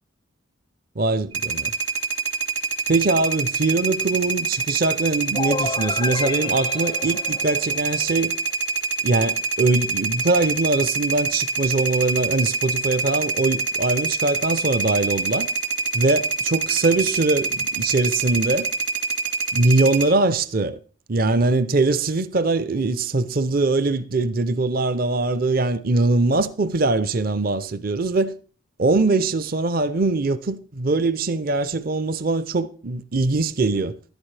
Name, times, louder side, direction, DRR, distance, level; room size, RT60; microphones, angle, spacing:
voice 1, 1.0-1.7 2.9-8.3 9.0-15.5 15.9-18.7 19.5-20.8 21.1-28.3 28.8-33.9, right 3 dB, 45° right, 0.6 m, -22 dB
sound 1, 1.3-20.0, right 5 dB, 60° right, 1.6 m, -25 dB
sound 2, 5.3-8.1, left 4 dB, 25° left, 0.4 m, -31 dB
13.0 x 11.5 x 3.3 m
head